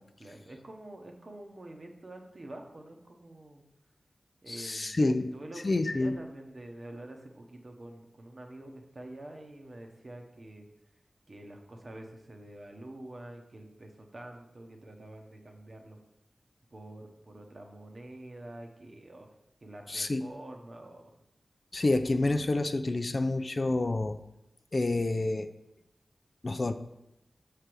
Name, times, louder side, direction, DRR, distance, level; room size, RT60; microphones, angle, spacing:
voice 1, 0.2-3.6 4.4-10.6 11.3-16.0 16.7-19.3 19.6-21.1, right 1 dB, 50° right, 3 dB, 1.0 m, -47 dB
voice 2, 4.5-5.3 5.6-6.2 19.9-20.2 21.7-24.2 24.7-25.5 26.4-26.7, left 2 dB, 50° left, 9 dB, 0.4 m, -28 dB
6.6 x 3.3 x 6.1 m, 0.86 s
cardioid pair, 50°, 0 cm